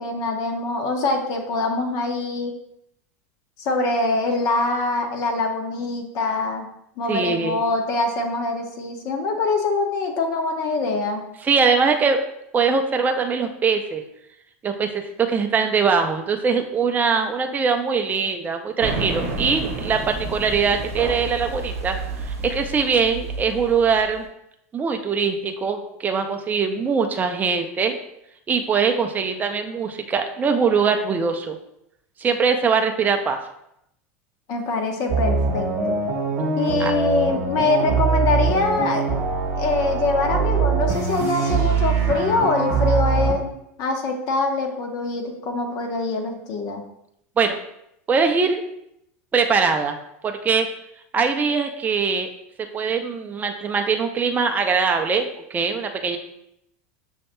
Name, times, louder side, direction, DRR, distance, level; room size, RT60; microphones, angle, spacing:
voice 1, 0.0-2.5 3.6-6.7 7.0-11.2 34.5-36.0 36.6-39.0 39.6-46.8, left 3 dB, 50° left, 3 dB, 0.9 m, -24 dB
voice 2, 7.1-7.6 11.4-12.2 12.5-14.0 14.6-22.0 22.4-24.3 24.7-28.0 28.5-31.6 32.2-33.4 36.8-36.9 47.4-47.6 48.1-48.6 49.3-50.0 50.2-50.7 51.1-52.3 52.6-56.2, right 5 dB, 20° right, 5 dB, 0.5 m, -22 dB
sound 1, 18.8-24.2, right 3 dB, 75° right, 0.8 m, -30 dB
sound 2, 35.1-43.3, right 5 dB, 45° right, 1.2 m, -22 dB
6.4 x 2.8 x 2.2 m, 0.78 s
hypercardioid pair, 100°, 8 cm